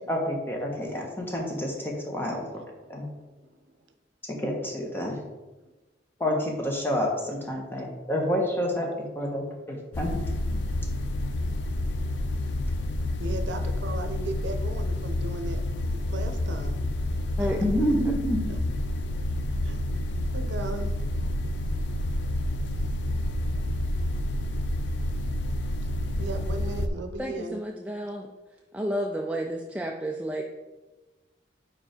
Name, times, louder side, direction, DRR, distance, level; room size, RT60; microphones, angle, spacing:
voice 1, 0.1-2.4 2.9-3.1 4.3-5.2 6.2-10.2 10.5-10.7 17.6-18.5, equal, 10° left, 0 dB, 1.0 m, -28 dB
voice 2, 2.8-3.8 5.6-5.7 10.8-11.3 13.2-15.6 15.9-16.8 17.4-17.6 18.5-18.6 19.1-19.8 20.3-20.9 26.2-27.6, right 2 dB, 85° right, 7 dB, 0.7 m, -37 dB
sound 1, 9.9-26.9, left 1 dB, 80° left, 0.5 m, -29 dB
voice 3, 26.9-28.3 28.7-30.4, equal, 10° right, 1 dB, 0.3 m, -31 dB
4.8 x 4.5 x 5.0 m, 1.2 s
head